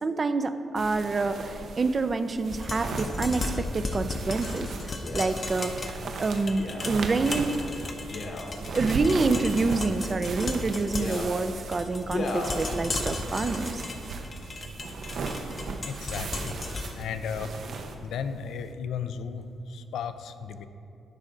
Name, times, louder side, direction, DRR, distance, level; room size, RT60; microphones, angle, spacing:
voice 1, 0.0-4.7 5.1-7.6 8.7-13.8 16.7-16.9, right 3 dB, 35° right, 10 dB, 0.4 m, -27 dB
sound 1, 0.8-17.9, right 3 dB, 65° right, 0.7 m, -37 dB
sound 2, 2.4-18.5, left 3 dB, 35° left, 0.6 m, -36 dB
Male speech man speaking, 5.0-5.3 6.5-6.9 8.0-8.5 9.4-9.9 10.8-11.3 12.1-12.5 13.2-13.3, left 3 dB, 60° left, 1.0 m, -35 dB
voice 2, 15.8-16.6 17.0-17.5 18.0-20.7, left 6 dB, 85° left, 10 dB, 0.4 m, -35 dB
11.5 x 5.0 x 3.9 m, 2.6 s
cardioid pair, 110°, 0 cm